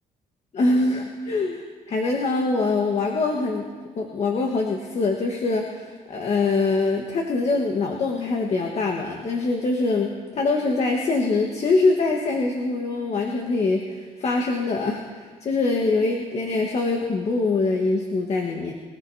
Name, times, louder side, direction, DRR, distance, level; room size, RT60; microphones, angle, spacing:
voice 1, 0.5-3.7 3.9-18.7, left 3 dB, 50° left, 1 dB, 1.5 m, -24 dB
24.5 x 14.5 x 2.8 m, 1.5 s
cardioid pair, 85°, 14 cm